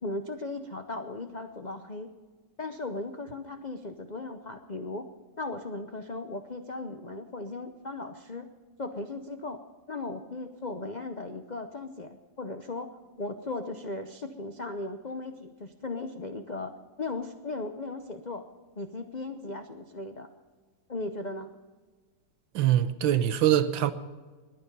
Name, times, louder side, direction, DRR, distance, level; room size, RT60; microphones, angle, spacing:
voice 1, 0.0-2.1 2.6-5.1 5.4-8.5 8.8-9.6 9.9-16.7 17.0-18.4 18.8-20.3 20.9-21.5, left 2 dB, 85° left, 0.4 m, -37 dB
voice 2, 22.5-23.9, right 11 dB, 90° right, 1.6 m, -23 dB
21.5 x 9.6 x 5.4 m
omnidirectional pair, 2.0 m